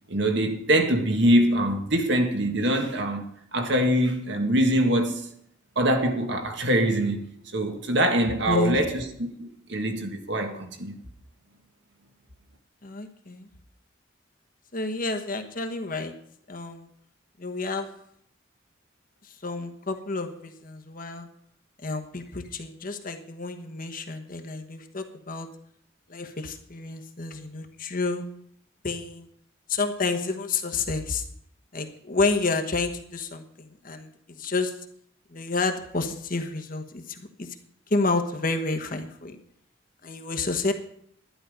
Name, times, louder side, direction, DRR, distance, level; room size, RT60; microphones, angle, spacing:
voice 1, 0.1-3.3 3.5-5.3 5.8-11.0, right 1 dB, 60° right, 1.7 m, -24 dB
voice 2, 8.5-8.8 12.8-13.5 14.7-16.1 16.5-16.9 17.4-17.9 19.4-21.3 21.8-25.5 26.1-28.2 28.8-29.3 29.7-31.2 31.7-34.1 34.4-34.7 35.3-37.5 37.9-39.4 40.0-40.7, left 3 dB, 45° left, 1.2 m, -29 dB
11.5 x 11.0 x 5.1 m
head